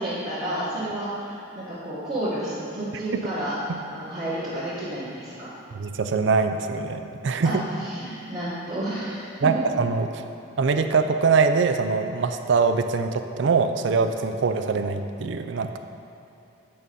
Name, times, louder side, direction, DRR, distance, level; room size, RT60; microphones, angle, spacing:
voice 1, 0.0-3.5 3.9-5.5 7.4-9.3, right 1 dB, 35° right, -13 dB, 1.6 m, -31 dB
voice 2, 5.7-7.6 9.4-10.1 10.6-15.8, right 4 dB, 65° right, 8 dB, 0.4 m, -23 dB
8.6 x 4.1 x 5.2 m, 2.8 s
head